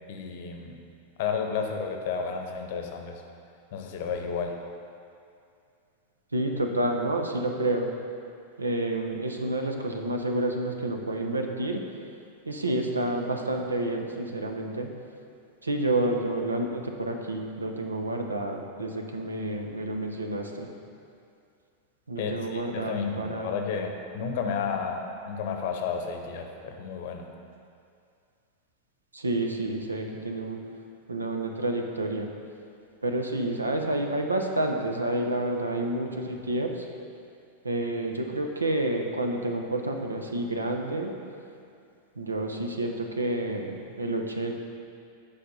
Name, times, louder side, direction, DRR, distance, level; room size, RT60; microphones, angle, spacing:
voice 1, 0.1-0.8 1.2-3.2 3.7-4.6 22.2-27.2, left 6 dB, 50° left, 4 dB, 0.9 m, -32 dB
voice 2, 6.3-7.9 8.6-11.8 12.5-14.9 15.6-20.7 22.1-23.5 29.1-30.6 31.1-32.3 33.0-36.7 37.6-41.1 42.2-44.5, right 1 dB, 80° right, 3 dB, 0.7 m, -29 dB
8.9 x 4.9 x 5.5 m, 2.4 s
figure-of-eight pair, 90°, 0 cm